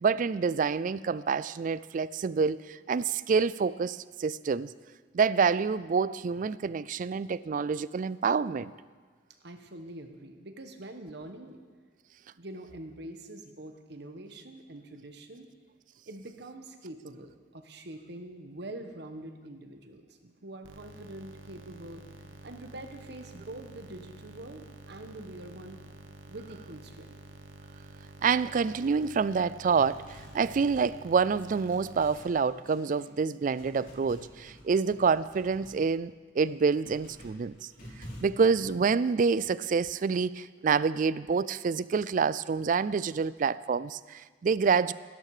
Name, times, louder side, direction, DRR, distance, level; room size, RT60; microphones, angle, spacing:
voice 1, 0.0-4.7 5.1-8.7 28.2-37.7 38.2-44.9, right 5 dB, 40° right, 0.3 m, -27 dB
voice 2, 9.4-11.6 12.4-15.5 16.1-22.0 22.4-25.8 26.3-27.2, right 1 dB, 55° right, 1.3 m, -44 dB
sound 1, 20.6-32.1, right 1 dB, 90° right, 1.3 m, -50 dB
sound 2, 29.7-33.1 33.5-35.8 36.3-38.7, equal, 45° left, 4.0 m, -50 dB
17.0 x 13.0 x 5.0 m
head